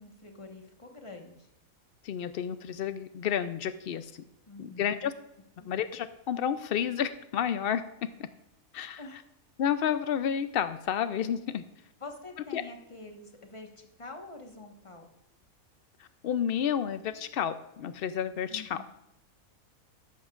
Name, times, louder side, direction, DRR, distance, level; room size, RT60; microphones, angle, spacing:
voice 1, 0.0-1.5 4.5-5.1 5.6-5.7 9.0-9.2 12.0-15.1 18.5-18.9, left 2 dB, 20° left, 3 dB, 1.3 m, -46 dB
voice 2, 2.0-4.1 4.6-5.1 5.7-7.8 8.7-9.0 9.6-11.6 12.5-12.6 16.2-18.8, left 9 dB, 80° left, 11 dB, 0.5 m, -30 dB
14.0 x 11.5 x 2.4 m, 0.90 s
omnidirectional pair, 1.5 m